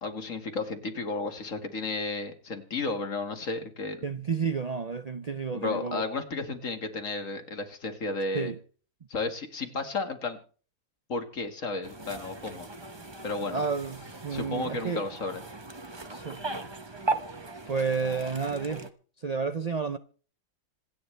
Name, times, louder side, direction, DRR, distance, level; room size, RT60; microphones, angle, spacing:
voice 1, 0.0-4.0 5.5-8.5 9.1-10.4 11.1-12.7 13.2-13.6 14.3-15.4, left 3 dB, 60° left, 2.2 m, -33 dB
voice 2, 4.0-6.0 8.3-8.6 13.5-15.0 16.1-16.4 17.7-18.9 19.2-20.0, right 5 dB, 45° right, 0.5 m, -31 dB
sound 1, 11.8-18.9, right 3 dB, 20° right, 1.0 m, -38 dB
26.5 x 9.4 x 3.3 m
omnidirectional pair, 1.5 m